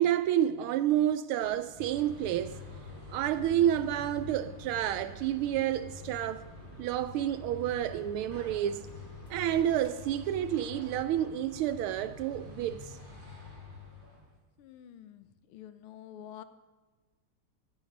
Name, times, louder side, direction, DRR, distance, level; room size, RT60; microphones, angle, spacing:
voice 1, 0.0-2.6 3.1-6.4 6.8-8.8 9.3-13.0, right 11 dB, 80° right, 1.4 m, -29 dB
sound 1, 1.4-9.9, left 2 dB, 50° left, 2.1 m, -55 dB
sound 2, 1.8-14.3, left 3 dB, 15° right, 6.0 m, -47 dB
voice 2, 14.6-16.4, left 10 dB, 90° left, 1.6 m, -48 dB
14.0 x 13.5 x 5.2 m
omnidirectional pair, 2.4 m